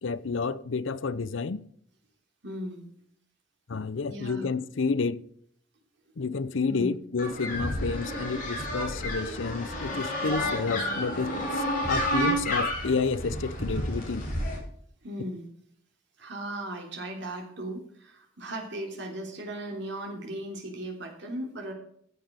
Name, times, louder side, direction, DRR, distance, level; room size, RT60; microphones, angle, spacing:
voice 1, 0.0-1.6 3.7-5.2 6.2-14.2, left 4 dB, 70° left, 0.6 m, -30 dB
voice 2, 2.4-2.9 4.1-4.5 6.6-6.9 15.0-15.5 16.2-21.7, right 1 dB, 60° right, 3.2 m, -37 dB
sound 1, 7.2-14.6, equal, 40° left, 5.4 m, -30 dB
15.0 x 7.5 x 5.2 m
head